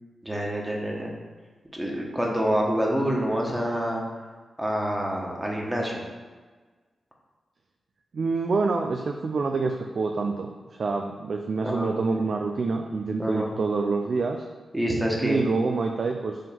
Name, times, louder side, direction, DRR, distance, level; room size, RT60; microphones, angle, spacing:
voice 1, 0.2-1.1 1.7-4.0 4.6-6.0 11.6-12.0 13.2-13.5 14.7-15.5, equal, 15° right, -1 dB, 1.5 m, -27 dB
voice 2, 8.1-14.4 15.2-16.4, right 4 dB, 65° right, 4 dB, 0.5 m, -27 dB
5.4 x 3.6 x 5.4 m, 1.4 s
cardioid pair, 55°, 0 cm